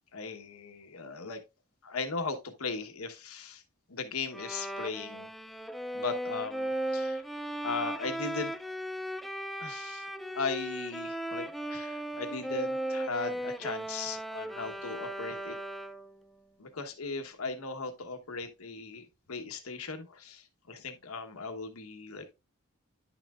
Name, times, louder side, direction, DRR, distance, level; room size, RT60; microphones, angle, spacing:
voice 1, 0.1-1.4 1.8-3.6 3.9-5.3 5.9-7.2 7.6-8.5 9.6-10.1 10.3-15.6 16.6-19.0 19.3-22.2, left 4 dB, 85° left, 1.2 m, -38 dB
Bowed string instrument, 4.3-16.2, right 1 dB, ahead, 0.3 m, -36 dB
10.5 x 5.8 x 2.4 m
head